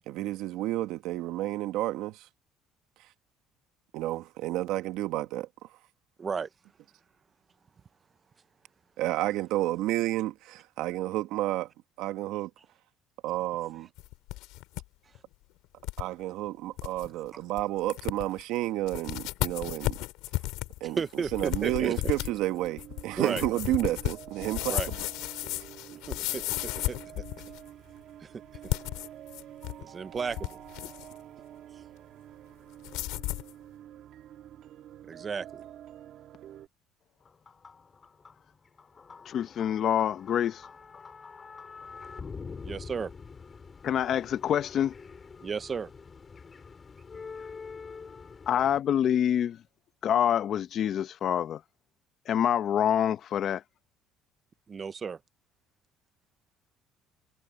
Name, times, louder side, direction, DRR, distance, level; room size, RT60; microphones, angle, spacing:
voice 1, 0.0-2.3 3.9-5.5 9.0-11.7 12.0-12.5 13.2-13.9 16.0-20.0 20.8-24.9, right 15 dB, 75° right, 1.4 m, -31 dB
voice 2, 6.2-6.5 21.0-22.1 23.2-23.4 24.7-24.9 25.9-27.2 28.2-28.3 29.9-30.6 31.7-31.8 35.1-35.6 42.6-43.1 45.4-45.9 54.7-55.2, right 5 dB, 30° right, 1.0 m, -34 dB
sound 1, 14.0-14.8 15.1-15.2 15.8-16.0 16.5-16.6 16.8-17.1 17.6-17.7 17.9-18.4 18.9-27.7 28.5-29.8 30.2-31.1 32.8-33.5, left 19 dB, 85° left, 2.8 m, -34 dB
sound 2, 21.7-36.7, right 11 dB, 60° right, 1.9 m, -48 dB
sound 3, 37.2-48.8, left 5 dB, 25° left, 4.6 m, -46 dB
voice 3, 39.3-40.6 43.8-44.9 48.5-49.6 50.0-51.6 52.3-53.6, left 9 dB, 50° left, 1.1 m, -26 dB
cardioid pair, 115°, 0 cm